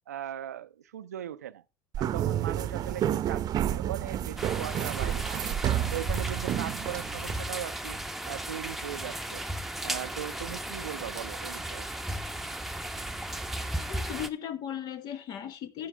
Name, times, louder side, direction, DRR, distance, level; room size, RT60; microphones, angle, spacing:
voice 1, 0.1-1.6 2.0-5.6 5.9-8.0 8.3-9.4 9.8-11.9, right 11 dB, 90° right, 0.5 m, -39 dB
sound 1, 1.9-7.4, right 11 dB, 50° right, 0.7 m, -30 dB
sound 2, 4.4-14.3, right 1 dB, 5° right, 0.9 m, -35 dB
voice 2, 13.8-15.9, left 10 dB, 55° left, 1.0 m, -37 dB
10.0 x 9.9 x 3.3 m
hypercardioid pair, 70°, 8 cm